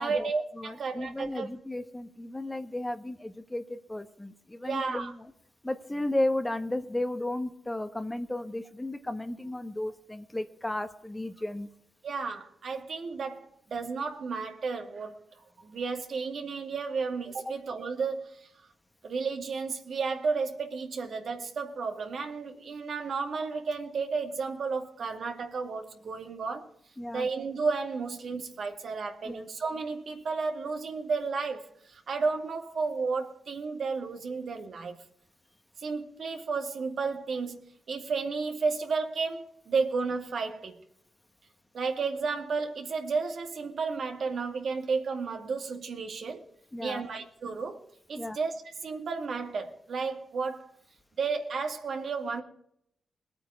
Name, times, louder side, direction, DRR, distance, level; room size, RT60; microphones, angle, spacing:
voice 1, 0.0-1.5 4.6-5.1 12.0-15.1 15.6-18.5 19.0-26.7 27.1-35.0 35.8-40.8 41.7-46.5 46.8-47.8 48.1-48.5 48.8-50.7 51.2-52.4, right 4 dB, 70° right, 2.3 m, -32 dB
voice 2, 0.5-5.2 5.6-11.7 17.5-17.6 27.0-27.3 29.2-29.5 46.7-47.0 48.2-48.4, left 1 dB, 15° left, 1.4 m, -34 dB
20.5 x 8.9 x 4.8 m
cardioid pair, 55°, 0 cm